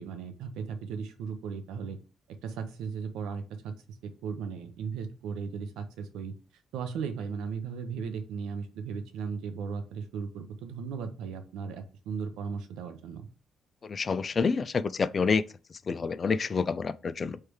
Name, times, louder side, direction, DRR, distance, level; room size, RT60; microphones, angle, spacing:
voice 1, 0.0-2.0 2.3-3.8 4.0-13.3, right 6 dB, 90° right, 0.7 m, -36 dB
voice 2, 13.8-15.4 15.7-17.4, left 5 dB, 40° left, 0.3 m, -28 dB
3.2 x 3.2 x 4.8 m
cardioid pair, 90°, 0 cm